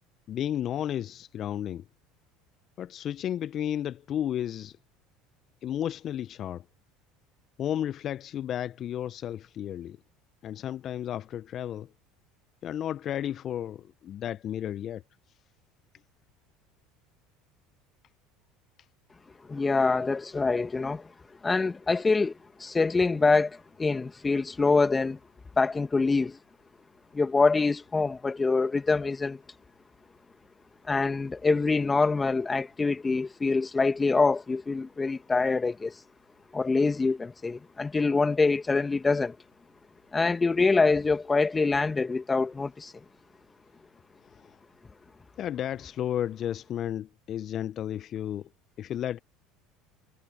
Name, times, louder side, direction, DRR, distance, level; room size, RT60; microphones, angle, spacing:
voice 1, 0.3-1.8 2.8-4.8 5.6-6.6 7.6-10.0 10.4-11.9 12.6-15.0 44.3-44.6 45.4-48.5 48.8-49.2, left 10 dB, 45° left, 0.7 m, -33 dB
voice 2, 19.5-21.1 21.4-22.3 22.6-25.2 25.6-26.4 27.1-29.4 30.9-35.9 36.5-39.3 40.1-42.9, left 4 dB, 20° left, 1.8 m, -25 dB
hypercardioid pair, 75°, 0 cm